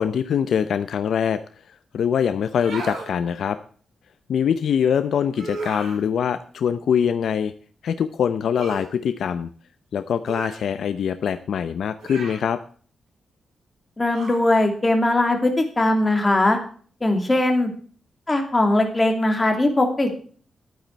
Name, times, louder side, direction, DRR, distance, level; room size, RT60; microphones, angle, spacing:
voice 1, 0.0-1.4 1.9-3.6 4.3-7.5 7.8-9.5 9.9-12.6, left 8 dB, 70° left, 11 dB, 0.6 m, -23 dB
sound 1, 2.5-3.1 5.3-6.0 8.5-8.9 10.2-10.6 12.0-12.5 14.1-14.4, right 3 dB, 85° right, 7.5 m, -34 dB
voice 2, 14.0-16.6 17.0-17.7 18.3-20.2, left 1 dB, 15° left, 4 dB, 2.5 m, -20 dB
12.0 x 9.3 x 4.5 m, 0.44 s
wide cardioid pair, 160°, 0 cm